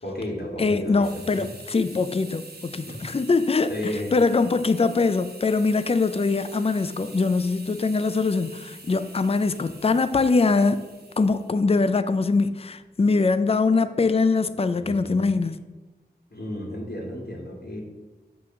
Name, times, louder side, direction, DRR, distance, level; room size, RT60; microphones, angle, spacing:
voice 1, 0.0-1.5 2.9-3.0 3.7-4.1 14.7-15.1 16.3-17.8, left 1 dB, 65° left, 2.0 m, -33 dB
voice 2, 0.6-3.7 4.1-10.8 11.2-15.5, left 4 dB, 35° left, 0.4 m, -22 dB
sound 1, 1.0-11.5, right 2 dB, 65° right, 1.1 m, -46 dB
8.4 x 3.0 x 5.9 m
wide cardioid pair, 55°, 18 cm